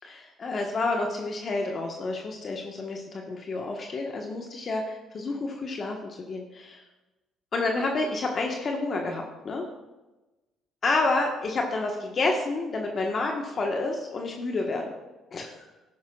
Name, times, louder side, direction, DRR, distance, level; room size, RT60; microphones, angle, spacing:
voice 1, 0.1-6.8 7.5-9.7 10.8-14.9 15.3-15.6, left 3 dB, 45° left, 1 dB, 1.4 m, -29 dB
12.5 x 10.0 x 2.4 m, 1.1 s
hypercardioid pair, 55°, 0 cm